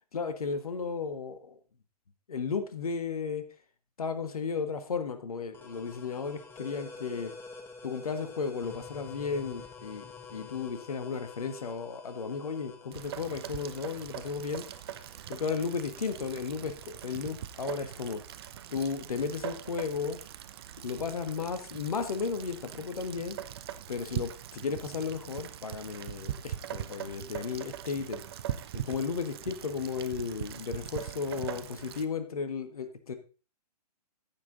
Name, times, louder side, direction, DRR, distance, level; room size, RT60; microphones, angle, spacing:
voice 1, 0.1-1.6 2.3-3.5 4.0-7.3 7.8-14.6 15.3-18.2 18.7-20.2 20.8-23.4 23.9-28.2 28.7-33.1, left 5 dB, 60° left, 9 dB, 1.5 m, -34 dB
sound 1, 5.5-16.9, left 4 dB, 10° left, 1.4 m, -49 dB
Rain, 12.9-32.1, right 10 dB, 40° right, 0.8 m, -41 dB
14.5 x 6.2 x 3.9 m, 0.36 s
figure-of-eight pair, 125°, 21 cm